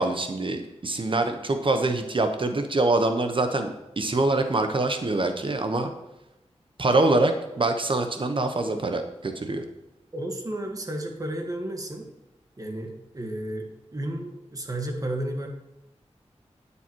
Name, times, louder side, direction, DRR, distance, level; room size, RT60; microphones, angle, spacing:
voice 1, 0.0-5.9 6.8-9.6, right 2 dB, 45° right, 6 dB, 0.9 m, -25 dB
voice 2, 10.1-12.1 12.6-15.5, right 1 dB, 30° right, 2 dB, 1.7 m, -32 dB
9.8 x 7.0 x 4.5 m, 0.91 s
wide cardioid pair, 85°, 12 cm